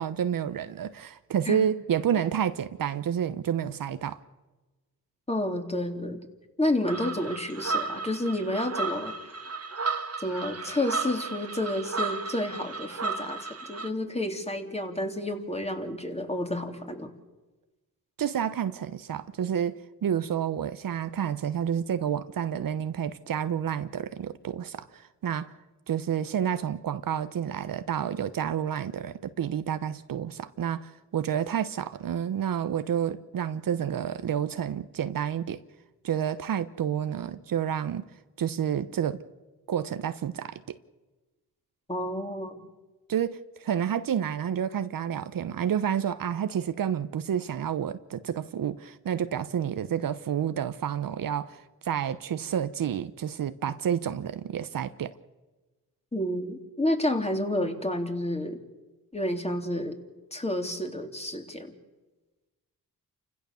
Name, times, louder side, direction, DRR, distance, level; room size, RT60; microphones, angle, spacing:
voice 1, 0.0-4.2 18.2-25.5 25.9-35.6 36.0-38.1 38.4-39.2 39.7-40.8 43.1-55.1, right 9 dB, 65° right, 0.9 m, -29 dB
voice 2, 5.3-6.2 6.6-9.1 10.2-17.1 41.9-42.7 56.1-58.6 59.1-60.0 60.3-61.7, left 1 dB, 15° left, 3.4 m, -30 dB
sound 1, 6.9-13.9, right 4 dB, 40° right, 1.6 m, -34 dB
29.0 x 16.0 x 7.0 m
cardioid pair, 55°, 37 cm